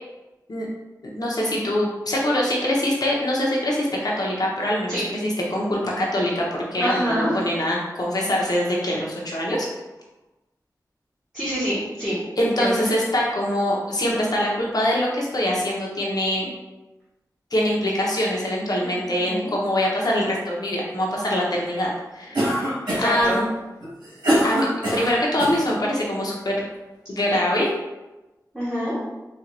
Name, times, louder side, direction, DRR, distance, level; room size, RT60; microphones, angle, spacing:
voice 1, 1.0-9.7 12.4-16.5 17.5-22.7 23.0-23.5 24.4-24.7 24.9-26.7 27.1-27.7, left 1 dB, 65° left, -3 dB, 0.8 m, -24 dB
voice 2, 6.8-7.4 11.3-12.8 18.8-18.9 19.2-19.5 22.9-23.4 28.5-29.0, equal, 10° right, -11 dB, 1.2 m, -26 dB
Cough, 22.3-23.2 23.8-25.6, equal, 85° right, 1.5 m, -23 dB
4.3 x 2.5 x 2.6 m, 1.1 s
wide cardioid pair, 75°, 7 cm